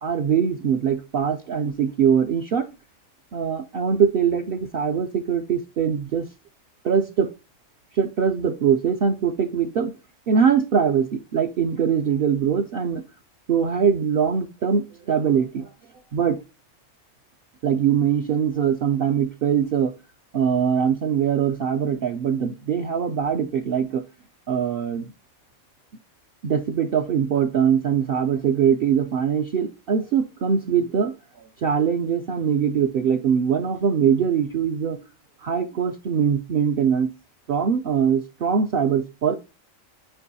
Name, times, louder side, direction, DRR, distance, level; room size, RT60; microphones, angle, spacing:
voice 1, 0.0-2.7 3.3-6.2 6.8-7.3 7.9-9.9 10.3-13.0 13.5-15.7 16.1-16.4 17.6-19.9 20.3-24.0 24.5-25.1 26.4-35.0 35.4-37.1 37.5-39.3, right 7 dB, 60° right, 0.6 m, -22 dB
9.0 x 4.5 x 2.7 m
omnidirectional pair, 1.3 m